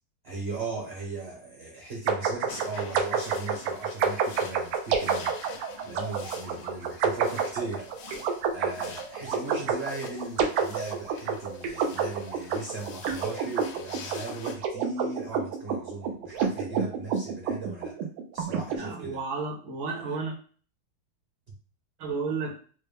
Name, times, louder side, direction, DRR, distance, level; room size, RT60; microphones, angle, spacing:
voice 1, 0.2-5.3 5.8-7.9 8.5-18.0 18.3-19.2, right 3 dB, 50° right, -2 dB, 0.8 m, -38 dB
sound 1, 2.1-18.8, right 6 dB, 90° right, 1.6 m, -29 dB
sound 2, 2.5-14.6, left 6 dB, 75° left, 1.3 m, -47 dB
voice 2, 18.7-20.3 22.0-22.6, right 4 dB, 70° right, 1 dB, 1.8 m, -32 dB
4.5 x 2.2 x 3.3 m, 0.41 s
omnidirectional pair, 2.3 m